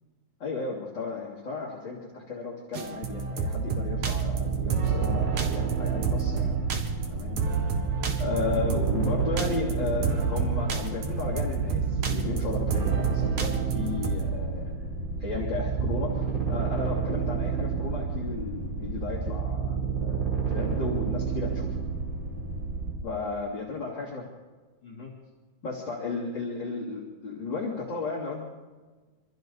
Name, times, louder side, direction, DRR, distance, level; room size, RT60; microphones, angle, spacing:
voice 1, 0.4-6.6 7.1-7.4 7.7-7.8 8.2-14.9 15.2-21.8 23.0-24.2 24.8-25.1 25.6-28.4, left 4 dB, 40° left, -5 dB, 3.6 m, -34 dB
sound 1, 2.7-14.3, right 5 dB, 80° right, 3.3 m, -30 dB
sound 2, 3.9-22.9, right 6 dB, 15° right, 6.6 m, -30 dB
26.5 x 26.0 x 4.0 m, 1.4 s
omnidirectional pair, 3.4 m